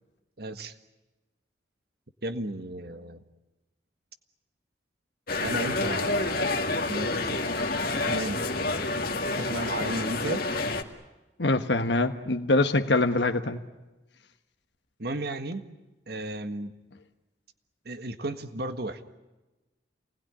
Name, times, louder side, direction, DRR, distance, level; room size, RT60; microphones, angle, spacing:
voice 1, 0.4-0.7 2.2-3.2 5.4-6.4 6.9-7.5 8.0-8.4 9.4-10.4 15.0-15.7 16.1-16.7 17.8-19.0, right 1 dB, 60° right, 9 dB, 1.7 m, -34 dB
sound 1, 5.3-10.8, left 2 dB, 55° left, 2.3 m, -28 dB
voice 2, 11.4-13.6, left 2 dB, 70° left, 5 dB, 1.3 m, -24 dB
28.5 x 20.0 x 10.0 m, 1.1 s
head